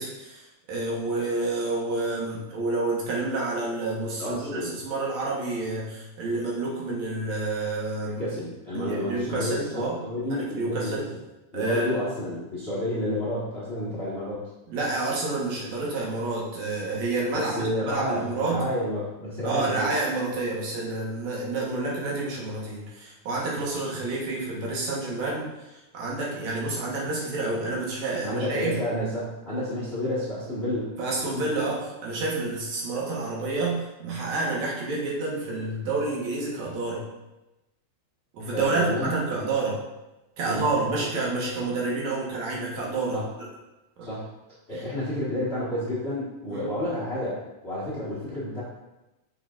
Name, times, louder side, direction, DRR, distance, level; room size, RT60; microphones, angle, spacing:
voice 1, 0.0-8.2 8.7-10.0 10.3-11.0 11.5-12.0 14.7-18.7 19.4-28.7 31.0-37.0 38.3-39.8 40.4-43.2 44.0-44.1 44.7-44.8 46.5-46.7, right 3 dB, 70° right, -4 dB, 2.5 m, -29 dB
voice 2, 4.2-4.7 8.0-11.1 11.5-14.5 17.4-20.0 28.2-30.9 31.2-31.7 38.5-39.1 40.4-41.1 43.1-43.3 44.0-44.3 44.7-47.4 47.6-48.6, left 1 dB, 45° left, -8 dB, 0.8 m, -30 dB
6.7 x 6.5 x 2.5 m, 0.99 s
omnidirectional pair, 3.5 m